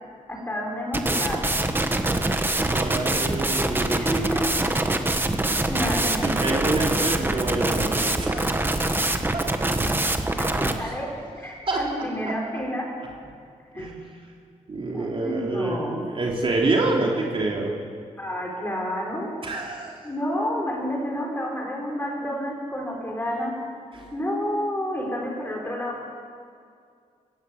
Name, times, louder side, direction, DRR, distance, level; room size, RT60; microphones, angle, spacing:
voice 1, 0.3-1.5 3.9-4.5 5.7-6.5 10.4-12.9 13.7-13.9 14.9-16.0 18.2-19.3 20.0-23.6 24.1-26.0, equal, 15° left, -1 dB, 5.5 m, -30 dB
sound 1, 0.9-10.7, right 2 dB, 15° right, 1.4 m, -24 dB
voice 2, 2.5-4.0 6.0-8.7 9.3-9.5 10.6-10.9 11.7-11.8 13.7-14.0 14.7-17.7 19.4-20.0 23.9-24.1, right 2 dB, 45° right, -2 dB, 3.2 m, -27 dB
23.0 x 16.0 x 8.3 m, 2.2 s
wide cardioid pair, 135°, 13 cm